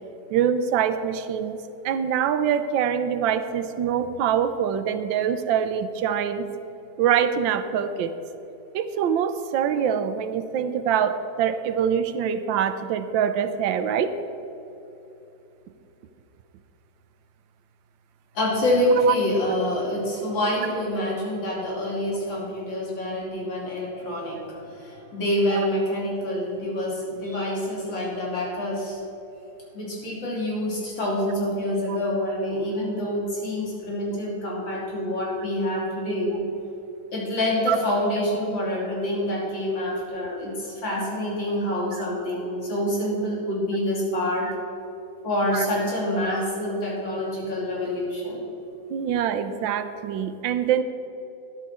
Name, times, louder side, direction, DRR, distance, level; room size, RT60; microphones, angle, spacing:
voice 1, 0.3-1.6 1.8-6.5 7.0-8.1 8.7-14.2 19.1-19.2 25.5-25.7 31.9-32.0 37.7-37.8 45.5-45.7 48.9-50.8, right 8 dB, 80° right, 11 dB, 1.4 m, -24 dB
voice 2, 18.4-29.0 29.7-36.4 37.1-44.5 45.2-48.5, left 1 dB, 75° left, -4 dB, 3.5 m, -26 dB
13.0 x 10.5 x 4.3 m, 3.0 s
omnidirectional pair, 2.1 m